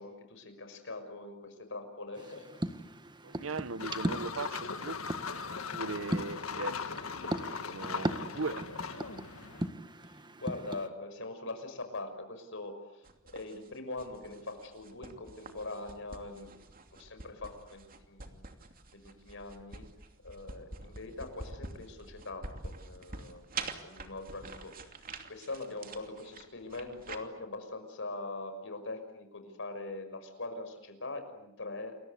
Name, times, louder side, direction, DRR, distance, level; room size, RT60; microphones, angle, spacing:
voice 1, 0.0-2.6 8.3-8.5 10.0-16.5 17.0-18.4 18.9-19.9 20.2-23.5 23.8-24.7 25.3-32.0, left 2 dB, 65° left, 7 dB, 6.0 m, -42 dB
sound 1, 2.2-10.9, right 1 dB, 20° right, 1.6 m, -39 dB
voice 2, 3.2-5.0 5.7-7.0 7.6-9.0, right 3 dB, 70° right, 15 dB, 1.1 m, -39 dB
sound 2, 3.8-9.7, left 5 dB, 85° left, 1.8 m, -39 dB
sound 3, 13.0-27.2, right 4 dB, 45° right, 2.8 m, -46 dB
29.0 x 23.0 x 8.3 m, 0.83 s
head